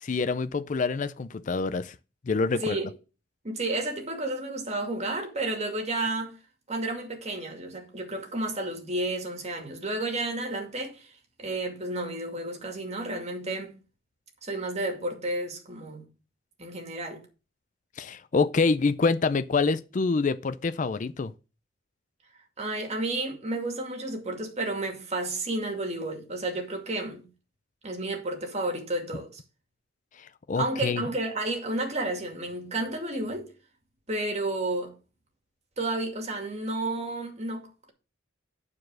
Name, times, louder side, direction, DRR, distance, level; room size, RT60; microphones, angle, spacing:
voice 1, 0.0-1.9 2.3-2.8 18.0-21.3 30.2-31.0, left 4 dB, 40° left, 0.4 m, -26 dB
voice 2, 2.5-2.9 3.4-6.4 6.7-11.1 11.4-13.7 14.4-16.0 16.6-17.2 22.6-27.2 27.8-29.4 30.6-33.5 34.1-34.9 35.8-37.9, right 2 dB, 35° right, 2.3 m, -31 dB
9.6 x 4.8 x 6.3 m
head